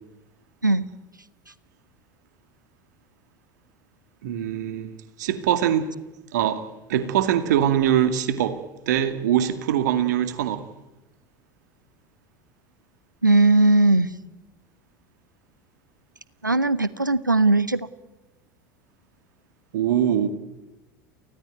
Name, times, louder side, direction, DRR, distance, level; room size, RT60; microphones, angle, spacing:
voice 1, 4.2-4.9 5.2-5.9 6.3-6.6 6.9-8.6 8.9-10.6 19.7-20.3, right 10 dB, 65° right, 2.3 m, -22 dB
voice 2, 13.2-14.1 16.4-17.9, right 2 dB, 90° right, 1.0 m, -18 dB
28.5 x 17.5 x 9.3 m
figure-of-eight pair, 75°, 10 cm